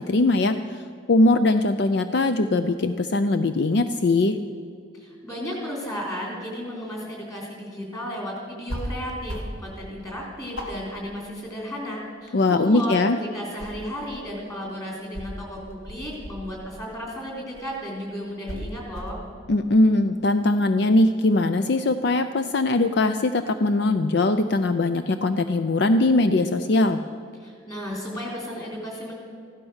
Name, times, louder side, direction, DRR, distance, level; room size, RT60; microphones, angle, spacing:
voice 1, 0.1-0.8 1.1-4.4 12.3-13.2 19.5-27.0, left 2 dB, 55° left, 9 dB, 0.4 m, -21 dB
voice 2, 4.9-19.2 27.4-29.1, equal, 15° left, -2 dB, 3.6 m, -34 dB
sound 1, 8.7-8.9 9.2-9.6 10.0-10.1 10.5-11.9 12.2-13.0 13.4-14.3 15.1-16.7 17.5-17.8 18.4-19.2, equal, 90° left, 2.2 m, -36 dB
15.5 x 12.0 x 6.4 m, 2.4 s
head